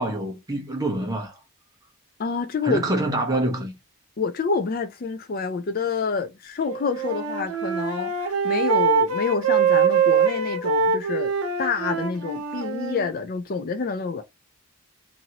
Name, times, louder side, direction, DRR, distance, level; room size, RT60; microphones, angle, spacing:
voice 1, 0.0-1.4 2.6-3.7, right 1 dB, 15° right, 0.8 m, -26 dB
voice 2, 2.2-2.8 4.2-11.3 11.6-14.2, left 5 dB, 40° left, 0.3 m, -27 dB
Wind instrument woodwind instrument, 6.7-13.1, right 6 dB, 80° right, 0.8 m, -23 dB
2.9 x 2.6 x 2.8 m
head